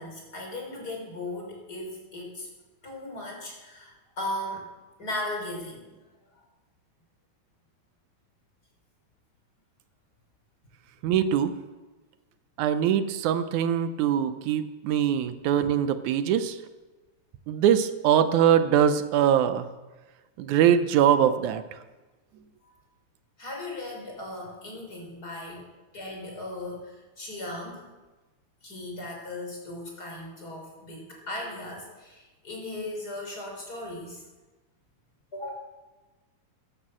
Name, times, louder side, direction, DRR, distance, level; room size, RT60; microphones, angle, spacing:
voice 1, 0.0-2.5 2.8-4.7 5.0-5.9 22.6-22.7 23.4-25.6 25.9-27.9 28.6-34.2 35.3-35.5, left 1 dB, 30° left, 0 dB, 4.1 m, -37 dB
voice 2, 11.0-11.5 12.6-16.6 17.5-19.7 20.4-21.6, right 9 dB, 85° right, 11 dB, 2.1 m, -22 dB
12.5 x 11.5 x 7.6 m, 1.2 s
omnidirectional pair, 3.4 m